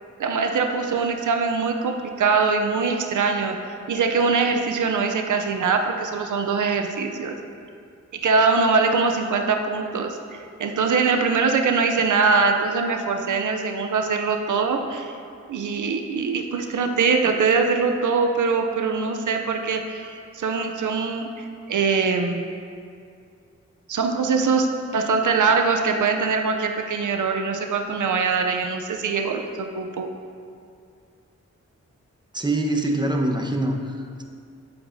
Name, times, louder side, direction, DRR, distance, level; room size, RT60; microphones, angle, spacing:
voice 1, 0.2-3.6 3.9-7.4 8.1-15.2 15.5-22.5 23.9-30.1, right 4 dB, 85° right, 5 dB, 0.6 m, -23 dB
voice 2, 32.3-34.2, right 1 dB, 15° right, 2 dB, 1.0 m, -24 dB
11.5 x 7.9 x 2.7 m, 2.4 s
cardioid pair, 45°, 30 cm